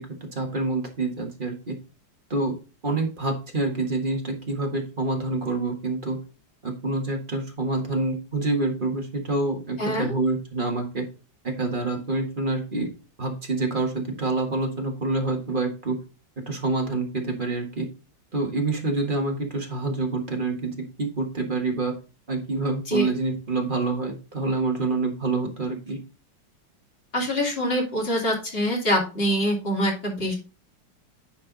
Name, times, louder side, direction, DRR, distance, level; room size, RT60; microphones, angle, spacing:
voice 1, 0.3-1.7 2.3-2.6 2.8-6.2 6.6-11.0 11.4-12.9 13.2-15.9 16.5-17.8 18.3-21.9 22.3-26.0, right 3 dB, 30° right, 2 dB, 1.6 m, -27 dB
voice 2, 9.8-10.1 22.9-23.1 27.1-30.4, equal, 30° left, -1 dB, 2.7 m, -24 dB
10.0 x 4.5 x 4.0 m, 0.33 s
omnidirectional pair, 2.1 m